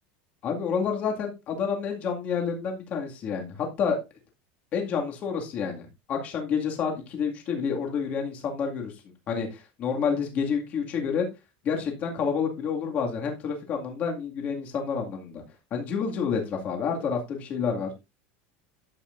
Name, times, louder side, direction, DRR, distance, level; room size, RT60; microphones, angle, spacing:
voice 1, 0.4-4.0 4.7-8.9 9.3-11.3 11.6-15.4 15.7-17.9, left 6 dB, 30° left, 2 dB, 2.1 m, -29 dB
11.5 x 8.0 x 2.6 m, 0.25 s
supercardioid pair, 180°, 5 cm